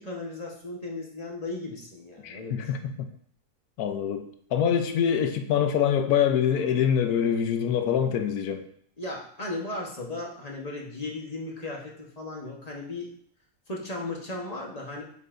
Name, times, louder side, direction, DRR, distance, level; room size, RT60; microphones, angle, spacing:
voice 1, 0.0-2.7 9.0-13.1 13.7-15.0, left 2 dB, 30° left, -1 dB, 1.1 m, -36 dB
voice 2, 2.2-2.8 3.8-4.3 4.5-8.6, left 8 dB, 85° left, 8 dB, 1.2 m, -24 dB
9.3 x 5.5 x 2.5 m, 0.63 s
omnidirectional pair, 1.6 m